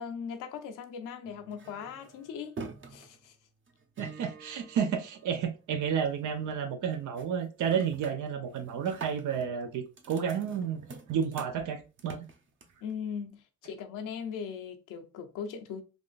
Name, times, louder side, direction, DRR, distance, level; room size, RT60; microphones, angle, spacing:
voice 1, 0.0-2.6 2.9-3.4 12.8-15.8, left 7 dB, 85° left, 0.7 m, -39 dB
sound 1, 1.2-5.8 6.1-6.5 6.8-7.3 7.6-12.9, right 4 dB, 40° right, 0.8 m, -48 dB
voice 2, 4.0-12.2, right 7 dB, 75° right, 0.7 m, -31 dB
3.6 x 2.5 x 2.4 m
cardioid pair, 75°, 31 cm